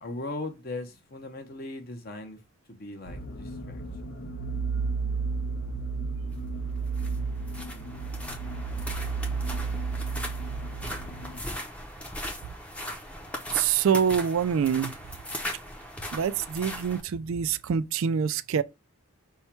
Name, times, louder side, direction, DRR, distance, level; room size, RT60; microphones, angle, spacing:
voice 1, 0.0-2.4 2.7-3.8, left 2 dB, 45° left, 0.8 m, -38 dB
sound 1, 3.1-11.4, right 4 dB, 70° left, 0.9 m, -32 dB
sound 2, 6.8-17.0, left 1 dB, 5° left, 0.6 m, -39 dB
voice 2, 13.5-15.0 16.1-18.6, right 7 dB, 70° right, 0.3 m, -25 dB
5.4 x 2.2 x 4.4 m
head